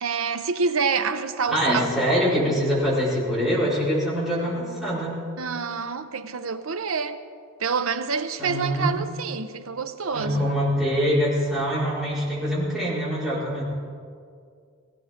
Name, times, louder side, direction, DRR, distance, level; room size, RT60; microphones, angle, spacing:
voice 1, 0.0-1.9 5.4-7.2 7.6-10.5, right 5 dB, 85° right, 0.8 m, -27 dB
voice 2, 1.5-5.2 8.4-8.9 10.1-13.6, equal, ahead, 4.8 m, -24 dB
18.5 x 16.0 x 3.7 m
head